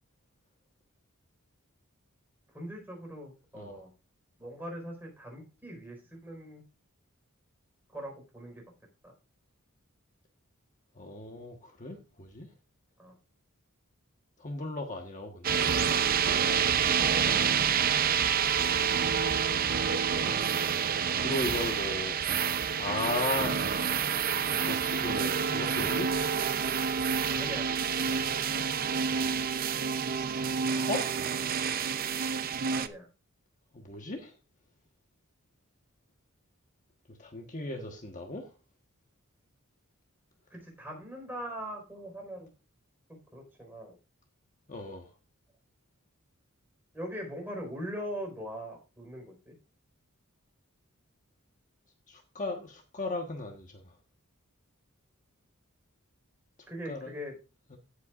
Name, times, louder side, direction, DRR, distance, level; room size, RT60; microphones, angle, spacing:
voice 1, 2.5-3.9 4.4-6.6 7.9-8.6 9.0-9.1 13.0-13.1 27.3-28.6 32.7-33.1 40.5-42.5 43.3-44.0 46.9-49.5 56.7-57.4, equal, 10° right, 0 dB, 4.5 m, -41 dB
voice 2, 11.0-12.5 14.4-15.7 20.0-20.4 21.1-22.2 22.8-23.6 24.6-26.2 28.1-28.2 29.1-29.4 30.7-31.2 33.7-34.3 37.2-38.5 44.7-45.1 52.1-53.8 56.9-57.1 57.7-57.8, left 2 dB, 35° left, 3 dB, 1.3 m, -36 dB
sound 1, 15.4-32.9, right 7 dB, 45° right, 0.6 m, -28 dB
16.5 x 8.2 x 2.5 m, 0.30 s
head